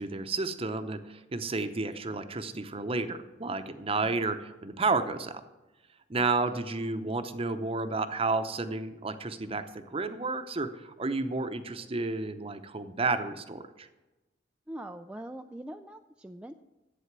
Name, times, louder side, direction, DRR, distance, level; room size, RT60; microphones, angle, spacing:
voice 1, 0.0-5.4 6.1-13.9, right 3 dB, 30° right, 9 dB, 0.8 m, -31 dB
voice 2, 6.1-6.6 14.7-16.5, right 1 dB, 5° right, 5 dB, 0.3 m, -43 dB
11.5 x 8.5 x 6.0 m, 1.1 s
head